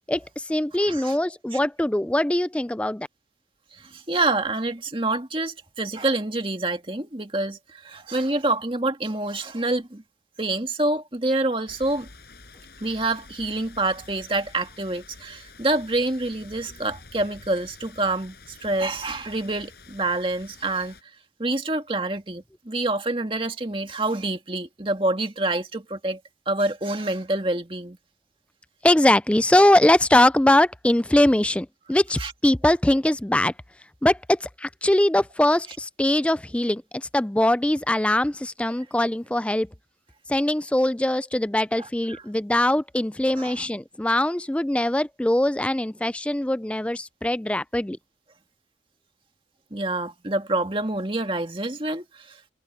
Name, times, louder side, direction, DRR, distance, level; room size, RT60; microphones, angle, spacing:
voice 1, 0.1-3.1 28.8-33.5 34.0-39.7 40.3-48.0, left 1 dB, 5° left, 0.3 m, -22 dB
voice 2, 3.8-10.0 10.4-12.1 12.8-21.0 21.4-26.2 26.5-28.0 32.2-32.3 43.4-43.5 49.7-52.4, right 2 dB, 30° right, 2.1 m, -27 dB
sound 1, 11.7-21.0, left 3 dB, 65° left, 5.8 m, -48 dB
head